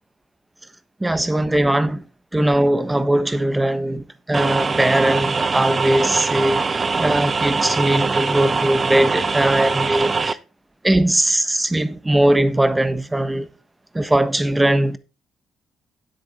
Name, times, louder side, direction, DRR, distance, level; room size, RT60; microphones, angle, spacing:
voice 1, 1.0-2.1 2.3-10.4 10.8-13.5 13.9-15.0, right 1 dB, 15° right, 1.2 m, -20 dB
sound 1, 4.3-10.3, right 4 dB, 40° right, 0.7 m, -22 dB
9.7 x 8.5 x 3.8 m
supercardioid pair, 55°, 0 cm